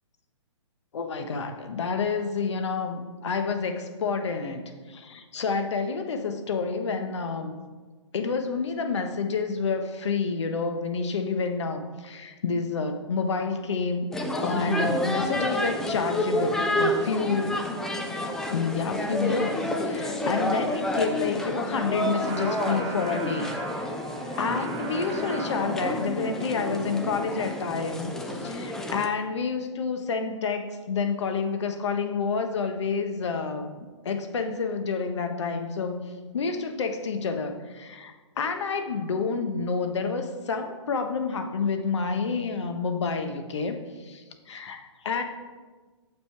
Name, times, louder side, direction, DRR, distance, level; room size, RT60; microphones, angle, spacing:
voice 1, 0.9-7.5 8.1-14.1 14.4-17.6 18.5-23.9 24.4-36.0 36.3-45.2, left 5 dB, 65° left, 6 dB, 1.2 m, -29 dB
sound 1, 14.1-29.1, left 1 dB, 5° left, 0.3 m, -29 dB
Singing, 21.8-28.5, right 4 dB, 40° right, 2.3 m, -40 dB
8.7 x 6.8 x 4.7 m, 1.3 s
hypercardioid pair, 150°, 16 cm